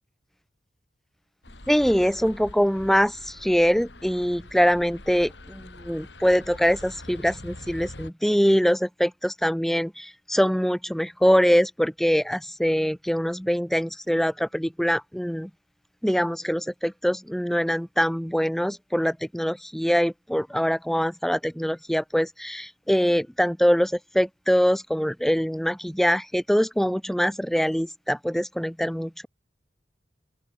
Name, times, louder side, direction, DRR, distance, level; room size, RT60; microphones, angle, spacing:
sound 1, 1.4-8.1, left 1 dB, 80° left, 4.0 m, -44 dB
voice 1, 1.7-15.5 16.0-29.3, equal, ahead, 0.9 m, -23 dB
open air
head